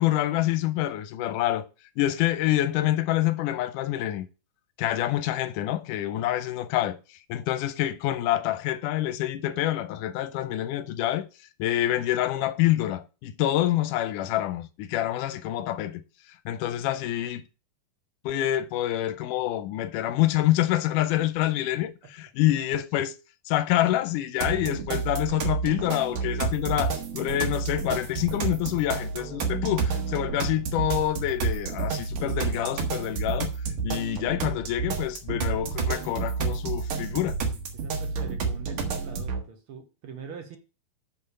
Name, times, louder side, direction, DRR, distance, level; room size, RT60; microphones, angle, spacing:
voice 1, 0.0-1.7 2.0-4.3 4.8-7.0 7.3-11.3 11.6-16.0 16.5-17.4 18.3-23.1 23.5-33.5 33.8-37.4, left 13 dB, 80° left, 2.0 m, -27 dB
sound 1, 24.4-39.4, right 5 dB, 70° right, 3.0 m, -30 dB
voice 2, 26.4-26.8 37.7-40.6, right 6 dB, 50° right, 1.8 m, -43 dB
6.7 x 5.9 x 6.6 m
omnidirectional pair, 4.0 m